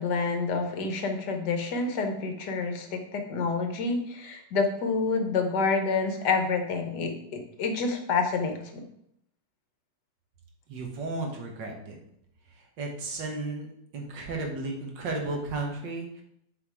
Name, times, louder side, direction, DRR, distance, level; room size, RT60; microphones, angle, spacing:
voice 1, 0.0-8.8, left 4 dB, 65° left, 5 dB, 1.5 m, -28 dB
voice 2, 10.7-12.0 12.5-13.7 13.9-16.2, right 2 dB, 75° right, 2 dB, 1.9 m, -34 dB
7.6 x 4.4 x 4.7 m, 0.73 s
omnidirectional pair, 2.0 m